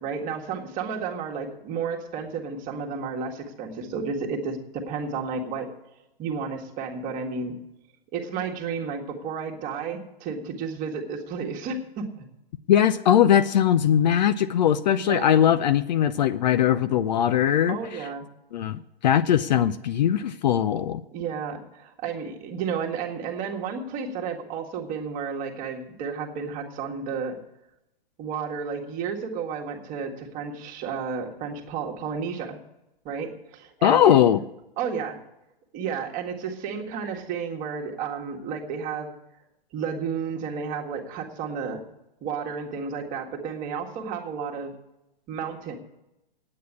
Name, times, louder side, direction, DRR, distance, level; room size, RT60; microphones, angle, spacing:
voice 1, 0.0-5.7 6.2-7.6 8.1-12.1 15.0-15.4 17.7-18.3 21.1-27.4 28.2-32.6 33.1-34.2 34.8-35.2 35.7-39.1 39.7-41.8 42.2-44.7 45.3-45.8, right 6 dB, 30° right, 1 dB, 1.7 m, -32 dB
voice 2, 12.7-18.1 18.5-21.0 33.8-34.4, left 10 dB, 50° left, 13 dB, 0.6 m, -20 dB
9.3 x 8.7 x 8.4 m, 0.89 s
figure-of-eight pair, 115°, 29 cm